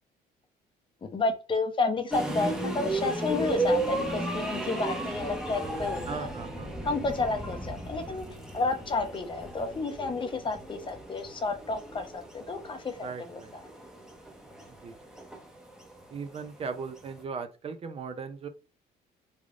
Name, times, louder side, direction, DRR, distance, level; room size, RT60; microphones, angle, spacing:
voice 1, 1.1-6.3 6.8-8.2 8.5-13.4, left 3 dB, 30° left, 7 dB, 0.7 m, -31 dB
sound 1, 2.1-17.2, right 2 dB, 5° right, 0.8 m, -34 dB
voice 2, 6.1-6.7 13.0-13.5 14.8-15.0 16.1-18.5, right 5 dB, 35° right, 8 dB, 0.5 m, -38 dB
3.5 x 3.4 x 2.4 m, 0.32 s
cardioid pair, 110°, 17 cm